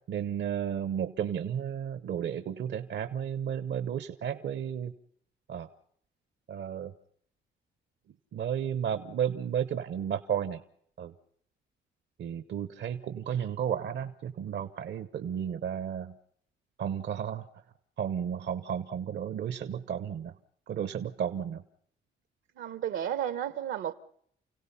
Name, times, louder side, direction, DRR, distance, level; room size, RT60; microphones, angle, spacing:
voice 1, 0.1-4.9 5.5-5.7 6.5-6.9 8.3-10.6 11.0-11.1 12.2-16.1 16.8-17.4 18.0-20.3 20.7-21.6, right 8 dB, 60° right, 1.0 m, -33 dB
voice 2, 22.6-23.9, right 10 dB, 80° right, 1.4 m, -32 dB
29.5 x 17.0 x 5.8 m
cardioid pair, 90°, 20 cm